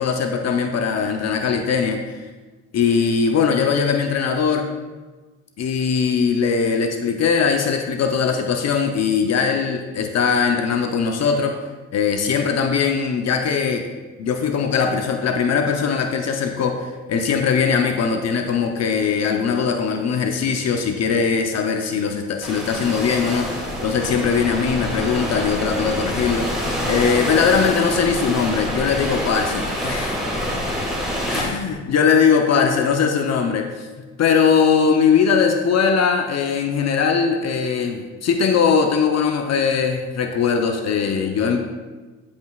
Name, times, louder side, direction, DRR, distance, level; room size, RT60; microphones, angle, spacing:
voice 1, 0.0-2.0 2.7-4.7 5.6-11.6 11.9-13.8 14.2-26.5 26.9-30.1 31.3-33.9 34.2-41.6, left 6 dB, 60° left, 4 dB, 0.7 m, -20 dB
sound 1, 22.4-31.4, equal, ahead, 2.5 m, -26 dB
13.0 x 5.3 x 2.4 m, 1.3 s
cardioid pair, 90°, 30 cm